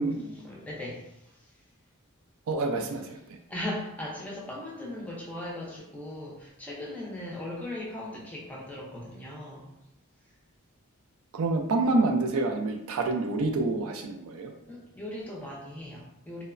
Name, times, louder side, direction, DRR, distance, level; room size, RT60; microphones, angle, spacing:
voice 1, 0.0-1.5 2.8-2.9 3.5-9.7 14.7-16.4, left 1 dB, 5° left, -3 dB, 0.4 m, -38 dB
voice 2, 2.5-3.4 11.3-14.5, right 2 dB, 75° right, 4 dB, 0.4 m, -27 dB
2.9 x 2.0 x 2.4 m, 0.85 s
head